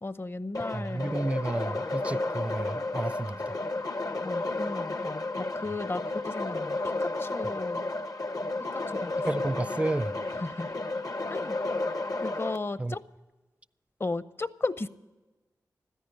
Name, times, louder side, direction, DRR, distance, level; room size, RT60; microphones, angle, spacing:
voice 1, 0.0-1.1 4.2-7.9 8.7-9.2 10.4-10.7 11.3-11.6 12.2-13.0 14.0-14.9, left 2 dB, 35° left, 0.7 m, -35 dB
sound 1, 0.5-12.6, left 2 dB, 60° left, 0.9 m, -32 dB
voice 2, 0.7-3.6 9.3-10.2 12.8-13.0, right 2 dB, 20° right, 0.4 m, -31 dB
13.5 x 10.5 x 8.0 m
cardioid pair, 45°, 7 cm